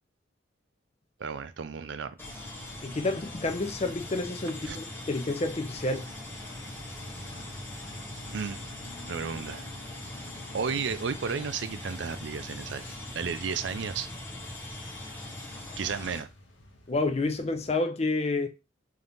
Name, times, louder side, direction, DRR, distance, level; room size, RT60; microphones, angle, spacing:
voice 1, 1.2-2.1 4.6-4.8 8.3-8.6 9.1-9.7 10.5-12.8 13.1-14.1 15.8-16.3, right 6 dB, 65° right, 0.4 m, -33 dB
sound 1, 2.2-16.2, left 1 dB, 10° left, 1.1 m, -41 dB
voice 2, 2.8-6.1 16.9-18.5, left 2 dB, 35° left, 0.5 m, -29 dB
sound 2, 6.1-17.7, left 1 dB, 70° left, 0.9 m, -51 dB
3.9 x 2.8 x 3.5 m
head